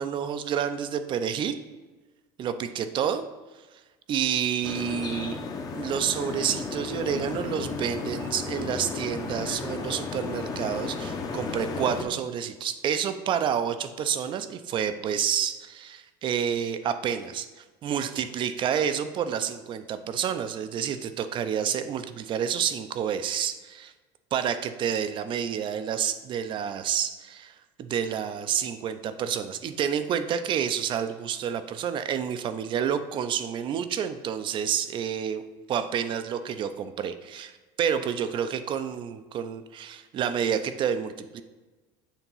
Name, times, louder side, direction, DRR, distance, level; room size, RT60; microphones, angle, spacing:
voice 1, 0.0-1.6 2.4-3.2 4.1-5.4 5.7-23.9 24.3-35.4 35.7-41.4, right 8 dB, 40° right, 10 dB, 0.5 m, -29 dB
sound 1, 4.6-12.0, left 4 dB, 30° left, 0.8 m, -34 dB
7.1 x 2.9 x 5.4 m, 1.3 s
supercardioid pair, 120°, 13 cm